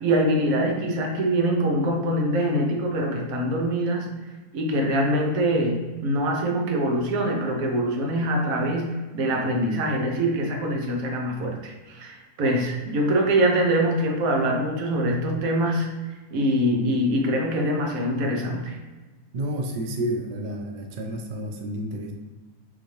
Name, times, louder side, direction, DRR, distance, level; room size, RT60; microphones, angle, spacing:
voice 1, 0.0-4.1 4.5-15.9 16.3-18.8, right 1 dB, 65° right, 1 dB, 1.1 m, -24 dB
voice 2, 19.3-22.1, right 1 dB, 90° right, 2 dB, 0.4 m, -30 dB
6.1 x 2.6 x 3.2 m, 1.3 s
omnidirectional pair, 1.7 m